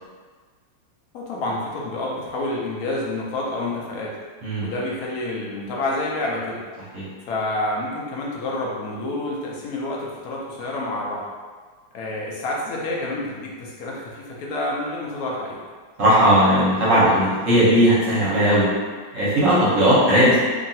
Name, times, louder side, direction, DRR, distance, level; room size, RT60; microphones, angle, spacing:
voice 1, 1.1-4.2 4.6-6.6 7.3-11.3 11.9-15.6, left 2 dB, 75° left, -3 dB, 0.8 m, -28 dB
voice 2, 16.0-18.7 19.1-20.4, equal, 55° right, -9 dB, 0.9 m, -17 dB
3.0 x 2.6 x 2.7 m, 1.5 s
omnidirectional pair, 2.1 m